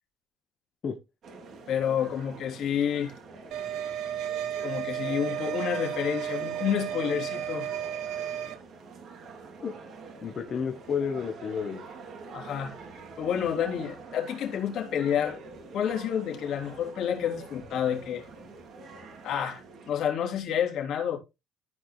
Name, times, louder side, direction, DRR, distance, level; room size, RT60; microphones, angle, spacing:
sound 1, 1.2-19.9, right 4 dB, 40° right, 3.0 m, -46 dB
voice 1, 1.7-3.1 4.6-7.7 12.3-12.8 13.2-15.4 15.7-18.3 19.2-21.2, left 9 dB, 55° left, 3.3 m, -29 dB
sound 2, 3.5-8.5, right 9 dB, 60° right, 2.1 m, -33 dB
voice 2, 10.2-12.0, left 6 dB, 35° left, 1.3 m, -31 dB
14.5 x 4.8 x 3.3 m
cardioid pair, 135°, 0 cm